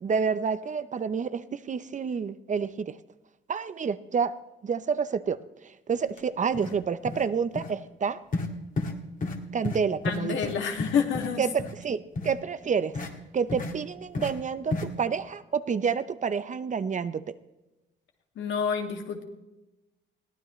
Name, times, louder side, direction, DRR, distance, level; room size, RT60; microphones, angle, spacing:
voice 1, 0.0-3.0 3.5-4.3 4.6-8.2 9.5-10.4 11.4-13.0 13.3-17.3, right 6 dB, 40° right, 13 dB, 0.7 m, -29 dB
sound 1, 6.1-6.2 6.5-6.8 7.0-7.3 7.5-7.7 8.3-8.5 8.8-8.9 9.2-9.4 9.6-9.8 10.0-11.3 11.6-11.7 12.1-12.3 12.9-13.1 13.5-13.7 14.1-14.3 14.7-14.9, left 3 dB, 40° left, 2.0 m, -31 dB
voice 2, 10.0-11.7 18.4-19.2, left 6 dB, 75° left, 3 dB, 2.2 m, -29 dB
21.5 x 15.5 x 3.2 m, 1.0 s
cardioid pair, 90°, 20 cm